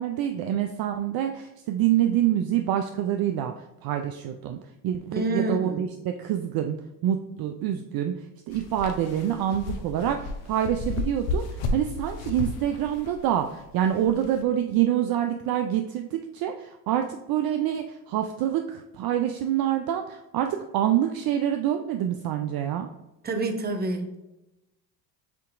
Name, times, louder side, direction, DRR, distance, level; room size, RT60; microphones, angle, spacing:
voice 1, 0.0-3.5 3.8-4.6 4.8-6.8 7.0-8.1 8.5-22.9, right 10 dB, 50° right, 6 dB, 0.5 m, -26 dB
voice 2, 5.1-5.8 23.2-24.2, right 2 dB, 20° right, 6 dB, 0.8 m, -28 dB
sound 1, 8.5-14.4, left 2 dB, 65° left, 0.8 m, -33 dB
6.9 x 2.8 x 2.5 m, 0.96 s
hypercardioid pair, 75°, 49 cm